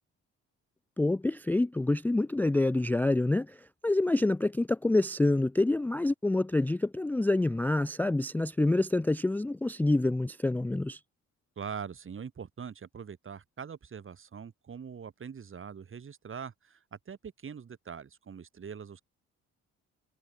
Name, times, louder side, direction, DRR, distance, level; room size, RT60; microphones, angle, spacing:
voice 1, 1.0-11.0, left 2 dB, 5° left, 0.4 m, -27 dB
voice 2, 11.6-19.0, right 6 dB, 45° right, 3.6 m, -43 dB
cardioid pair, 90°, 30 cm